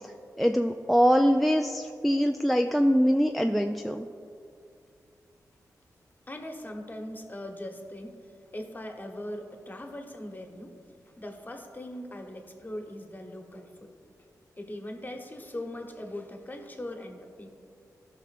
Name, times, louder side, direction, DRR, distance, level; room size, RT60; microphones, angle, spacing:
voice 1, 0.4-4.1, equal, ahead, 5 dB, 0.3 m, -23 dB
voice 2, 6.3-10.7 11.1-14.0 14.6-17.5, left 1 dB, 25° left, 3 dB, 1.1 m, -40 dB
14.5 x 5.6 x 2.5 m, 2.4 s
cardioid pair, 50°, 7 cm